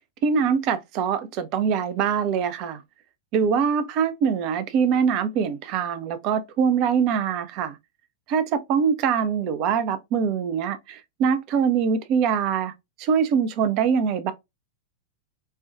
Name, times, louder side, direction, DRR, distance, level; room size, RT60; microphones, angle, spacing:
voice 1, 0.2-2.8 3.3-7.8 8.3-12.7 13.0-14.3, right 7 dB, 40° right, 0.5 m, -23 dB
4.3 x 2.3 x 2.3 m
figure-of-eight pair, 90°, 0 cm